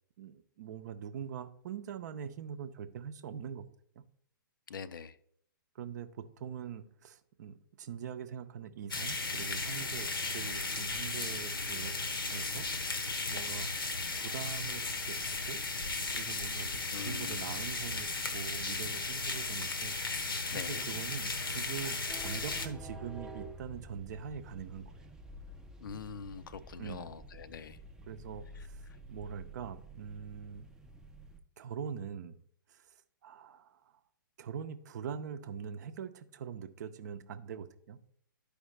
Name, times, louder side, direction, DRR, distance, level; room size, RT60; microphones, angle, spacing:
voice 1, 0.2-3.6 4.0-4.1 5.7-12.0 12.3-12.7 13.3-19.9 20.5-25.1 26.8-27.1 28.1-30.7 31.6-32.4 32.7-32.8 33.2-33.8 34.4-38.0, right 7 dB, 50° right, 11 dB, 0.7 m, -43 dB
voice 2, 4.7-5.2 16.9-17.5 20.5-20.9 25.8-27.8, left 6 dB, 65° left, 13 dB, 0.5 m, -43 dB
sound 1, 8.9-22.7, left 3 dB, 85° left, 1.0 m, -36 dB
sound 2, 22.1-31.4, right 1 dB, 5° right, 0.5 m, -50 dB
11.5 x 5.0 x 3.2 m, 0.67 s
figure-of-eight pair, 120°, 12 cm